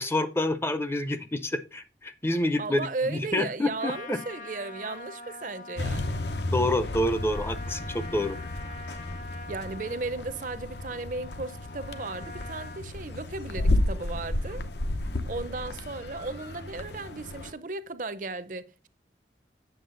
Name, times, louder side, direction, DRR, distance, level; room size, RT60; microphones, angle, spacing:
voice 1, 0.0-4.2 6.5-8.4, left 1 dB, 15° left, 0.5 m, -28 dB
voice 2, 2.6-6.2 9.5-14.7 15.3-18.9, right 3 dB, 45° right, 0.6 m, -35 dB
Trumpet, 3.8-12.9, left 2 dB, 45° left, 0.9 m, -44 dB
sound 1, 5.8-17.5, left 1 dB, 75° left, 0.8 m, -32 dB
8.0 x 7.2 x 3.8 m
head